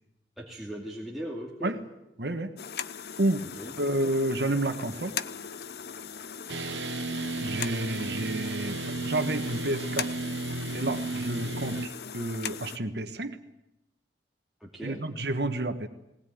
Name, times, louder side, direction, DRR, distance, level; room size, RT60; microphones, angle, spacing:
voice 1, 0.4-1.8 3.6-3.8 14.6-15.0, equal, ahead, -3 dB, 2.4 m, -38 dB
voice 2, 2.2-2.5 3.2-3.5 3.8-5.2 7.4-10.1 10.7-13.4 14.8-15.9, right 1 dB, 65° right, 8 dB, 1.4 m, -30 dB
sound 1, 2.6-12.8, left 7 dB, 60° left, 0.8 m, -39 dB
sound 2, 6.5-11.9, right 3 dB, 85° right, 1.0 m, -33 dB
19.5 x 19.5 x 9.4 m, 0.88 s
head